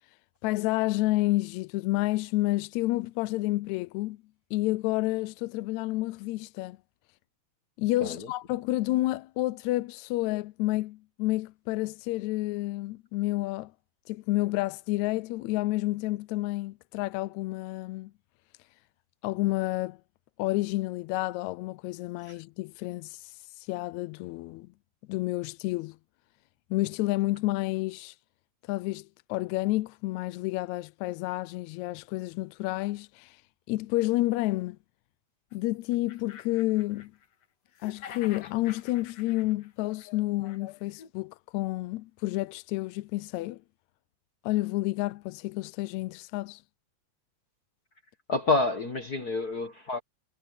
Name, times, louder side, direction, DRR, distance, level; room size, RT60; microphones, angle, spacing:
voice 1, 0.4-4.2 4.5-6.8 7.8-13.7 14.1-18.1 19.2-20.0 20.4-24.7 25.1-26.0 26.7-28.2 28.7-33.4 33.7-34.8 35.5-37.1 37.8-43.6 44.4-46.6, left 18 dB, 80° left, 1.8 m, -30 dB
voice 2, 8.0-8.3 22.2-22.4 48.3-50.0, left 3 dB, 40° left, 1.5 m, -28 dB
sound 1, 35.5-35.6 35.9-37.4 37.7-41.1, left 8 dB, 60° left, 2.6 m, -48 dB
omnidirectional pair, 3.4 m